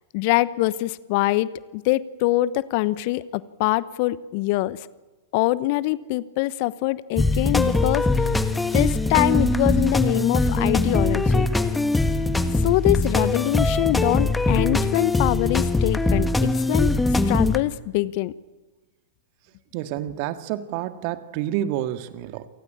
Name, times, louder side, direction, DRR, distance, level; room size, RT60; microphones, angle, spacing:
voice 1, 0.1-4.9 5.3-8.2 8.7-11.5 12.6-18.3, left 18 dB, 50° left, 18 dB, 1.0 m, -24 dB
sound 1, 7.2-17.6, left 2 dB, 10° left, 1.6 m, -21 dB
voice 2, 19.7-22.5, right 12 dB, 50° right, 10 dB, 1.9 m, -29 dB
28.0 x 19.0 x 8.8 m, 1.2 s
figure-of-eight pair, 100°, 0 cm